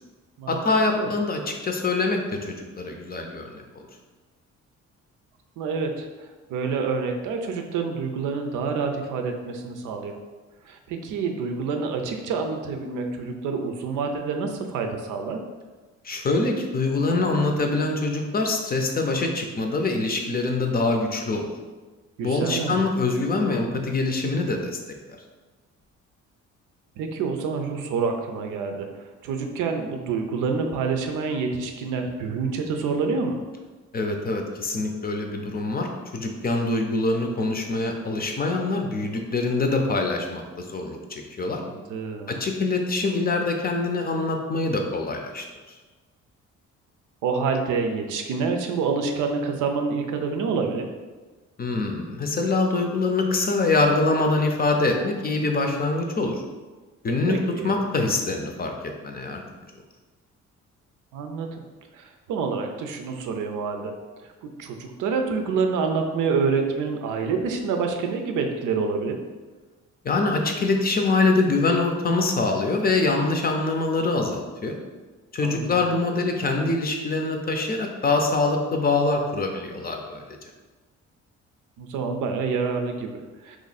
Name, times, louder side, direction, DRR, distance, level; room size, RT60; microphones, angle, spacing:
voice 1, 0.5-3.9 16.0-21.5 22.2-24.8 25.1-25.2 33.9-41.6 42.3-45.4 51.6-56.4 57.0-57.4 57.6-59.4 70.0-74.7 75.3-80.5, left 3 dB, 30° left, 3 dB, 0.5 m, -24 dB
voice 2, 5.6-10.1 10.7-15.4 22.2-22.8 27.0-28.9 29.2-33.4 41.4-42.4 47.2-50.9 57.3-57.8 61.1-61.6 61.9-63.9 64.2-69.2 75.4-75.8 81.8-83.6, right 5 dB, 85° right, 4 dB, 0.5 m, -27 dB
3.0 x 2.6 x 4.0 m, 1.3 s
cardioid pair, 90°, 30 cm